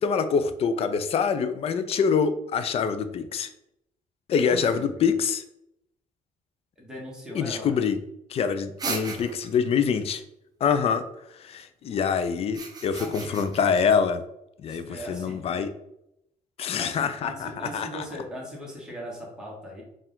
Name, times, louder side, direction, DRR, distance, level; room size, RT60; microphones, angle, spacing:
voice 1, 0.0-3.5 4.3-5.4 7.3-8.0 8.3-10.2 10.6-11.0 11.4-14.2 14.6-15.7 16.6-18.0, left 6 dB, 45° left, 10 dB, 0.4 m, -25 dB
voice 2, 4.3-4.8 6.8-7.8 13.0-13.5 14.7-15.5 16.8-19.8, equal, 5° right, -3 dB, 1.3 m, -39 dB
sound 1, 8.8-9.6 12.4-13.8, right 3 dB, 25° right, 0.7 m, -35 dB
4.5 x 2.4 x 3.6 m, 0.82 s
cardioid pair, 155°, 14 cm